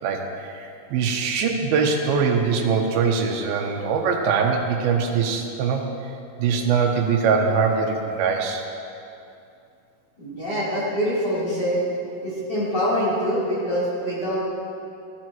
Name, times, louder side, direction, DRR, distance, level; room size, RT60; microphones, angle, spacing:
voice 1, 0.0-5.8 6.4-8.6, right 5 dB, 80° right, 2 dB, 2.8 m, -22 dB
voice 2, 10.2-11.9 12.2-14.4, equal, 25° left, -9 dB, 3.9 m, -24 dB
18.0 x 12.0 x 3.1 m, 2.6 s
omnidirectional pair, 4.4 m